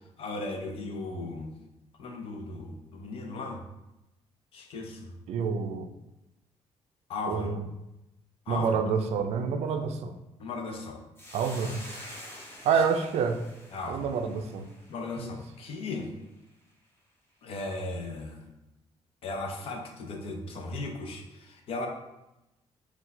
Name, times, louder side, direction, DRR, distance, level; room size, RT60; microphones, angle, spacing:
voice 1, 0.2-1.5 2.0-3.6 4.5-5.1 7.1-7.6 8.5-8.7 10.4-11.0 12.7-12.8 13.7-14.1 14.9-16.1 17.4-18.4 19.2-21.9, left 2 dB, 60° left, 2 dB, 0.7 m, -36 dB
voice 2, 5.3-5.9 7.3-7.6 8.5-10.2 11.3-11.8 12.6-13.4 13.9-14.7 15.2-15.3, right 6 dB, 75° right, 7 dB, 0.4 m, -28 dB
Hiss, 11.2-15.7, left 1 dB, 20° left, 0.8 m, -47 dB
4.5 x 2.3 x 4.0 m, 0.95 s
cardioid pair, 160°, 11 cm